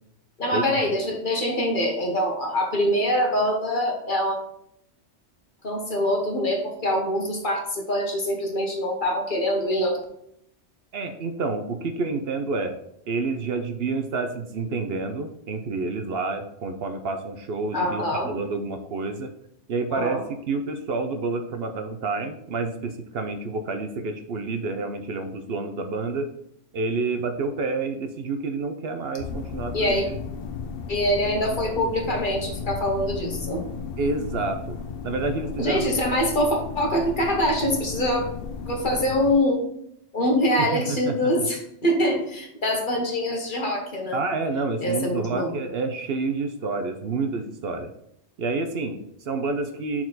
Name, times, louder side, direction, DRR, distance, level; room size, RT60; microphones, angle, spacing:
voice 1, 0.4-4.4 5.6-10.0 17.7-18.3 19.9-20.2 29.7-30.1 30.9-33.7 35.6-38.3 38.6-39.6 40.1-44.2 44.8-45.5, equal, 45° left, 1 dB, 1.4 m, -24 dB
voice 2, 10.9-12.7 13.1-19.3 19.7-26.3 26.7-30.2 34.0-34.8 35.0-35.9 40.6-41.1 44.1-47.9 48.4-50.0, right 3 dB, 65° right, 6 dB, 0.8 m, -29 dB
sound 1, 29.2-39.3, left 5 dB, 60° left, 0.7 m, -34 dB
6.4 x 4.4 x 4.0 m, 0.74 s
omnidirectional pair, 1.2 m